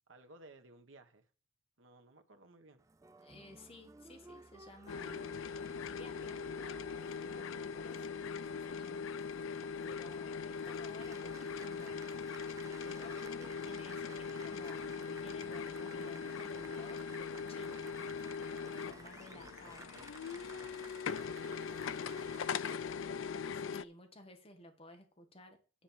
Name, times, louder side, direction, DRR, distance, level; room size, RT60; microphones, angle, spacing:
voice 1, 0.1-1.3 1.8-2.8 19.3-23.0, right 2 dB, 85° right, 1.3 m, -60 dB
Applause, 2.8-22.8, right 3 dB, 15° right, 0.4 m, -56 dB
voice 2, 3.2-6.4 7.2-9.1 9.8-12.3 12.8-17.8 18.4-19.9 23.5-25.8, left 1 dB, 30° left, 1.4 m, -55 dB
sound 1, 4.9-23.8, left 6 dB, 90° left, 0.4 m, -41 dB
10.0 x 4.4 x 7.3 m
head